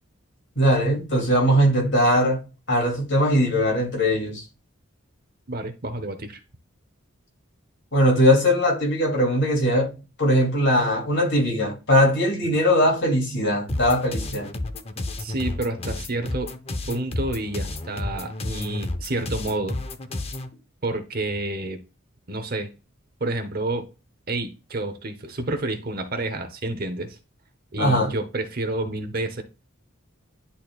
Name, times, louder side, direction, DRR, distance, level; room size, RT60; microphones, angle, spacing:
voice 1, 0.6-4.4 7.9-14.5 27.8-28.1, equal, 60° left, 2.7 m, -20 dB
voice 2, 5.5-6.4 15.2-16.5 16.9-19.8 20.8-21.8 22.3-22.7 23.2-23.9 24.3-27.2 27.7-29.4, right 2 dB, 45° right, 0.9 m, -29 dB
sound 1, 13.7-20.5, left 2 dB, 30° left, 0.6 m, -31 dB
10.5 x 4.1 x 2.4 m
head